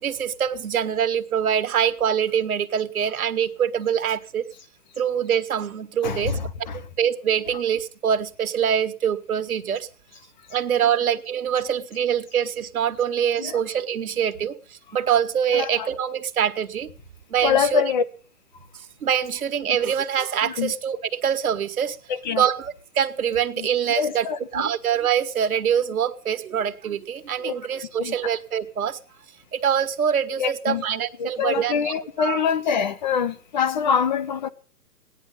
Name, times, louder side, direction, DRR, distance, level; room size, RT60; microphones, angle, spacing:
voice 1, 0.0-4.5 5.0-6.4 7.0-9.9 10.5-16.9 17.3-17.8 18.7-22.0 22.3-24.3 24.5-29.0 29.5-31.9 32.2-32.4, right 8 dB, 65° right, 1.7 m, -24 dB
voice 2, 6.0-6.4 6.7-6.8 13.4-13.6 15.5-15.9 17.4-18.0 20.4-20.7 22.2-22.4 23.6-23.7 24.0-24.4 27.4-27.5 28.0-28.1 30.4-30.8 31.2-34.5, left 7 dB, 30° left, 0.9 m, -24 dB
17.5 x 10.5 x 5.5 m
hypercardioid pair, 165°, 45 cm